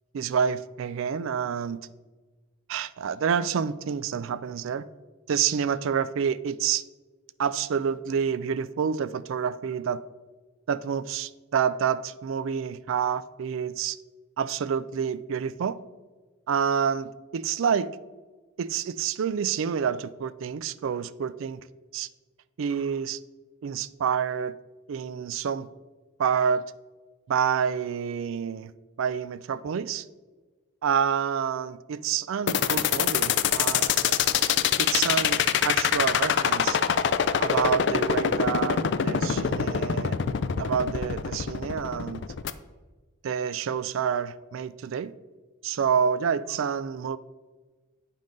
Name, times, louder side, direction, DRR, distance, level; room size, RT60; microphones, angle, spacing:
voice 1, 0.1-1.9 2.7-4.9 5.3-6.8 7.4-10.0 10.7-14.0 14.4-15.8 16.5-17.9 18.6-21.6 21.9-22.1 22.6-23.2 23.6-24.6 24.9-25.7 26.2-26.6 27.3-28.7 29.0-30.0 30.8-33.9 34.8-36.8 37.4-40.2 40.6-42.2 43.2-45.1 45.6-47.2, right 7 dB, 70° right, 0.3 m, -28 dB
sound 1, 32.5-42.5, left 8 dB, 55° left, 0.3 m, -24 dB
9.0 x 5.4 x 3.8 m
head